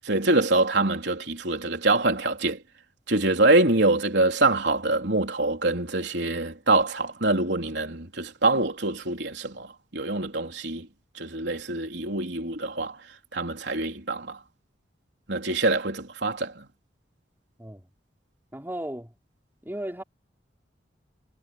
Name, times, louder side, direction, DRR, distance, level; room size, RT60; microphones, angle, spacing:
voice 1, 0.0-2.6 3.1-10.9 11.1-13.0 13.3-14.4 15.3-16.7, right 2 dB, 70° right, 3.8 m, -25 dB
voice 2, 18.5-19.1 19.6-20.0, right 1 dB, 10° right, 4.1 m, -35 dB
head